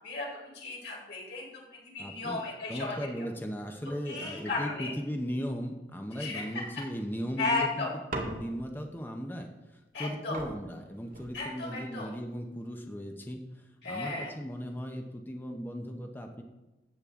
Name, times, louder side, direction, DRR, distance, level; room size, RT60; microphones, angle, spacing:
voice 1, 0.0-2.9 4.1-4.9 6.2-6.6 7.4-7.9 9.9-10.4 11.3-12.1 13.8-14.3, left 3 dB, 90° left, -3 dB, 4.3 m, -35 dB
voice 2, 2.0-2.4 2.7-16.4, equal, 10° left, 3 dB, 0.8 m, -37 dB
sound 1, 8.1-8.8 10.0-10.1 10.3-11.8 12.6-13.0, right 2 dB, 50° right, 1.9 m, -40 dB
14.0 x 8.8 x 3.7 m, 1.0 s
head